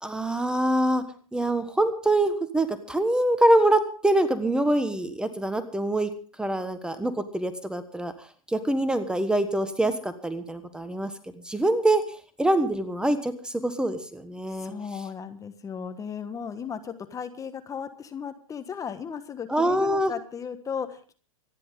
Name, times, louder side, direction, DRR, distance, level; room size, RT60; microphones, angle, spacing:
voice 1, 0.0-1.0 1.3-6.1 6.4-8.1 8.5-11.1 11.4-12.0 12.4-14.7 19.5-20.1, right 1 dB, 5° right, 11 dB, 1.3 m, -24 dB
voice 2, 14.6-21.1, left 7 dB, 20° left, 9 dB, 1.3 m, -36 dB
25.5 x 10.5 x 3.7 m, 0.41 s
hypercardioid pair, 110°, 18 cm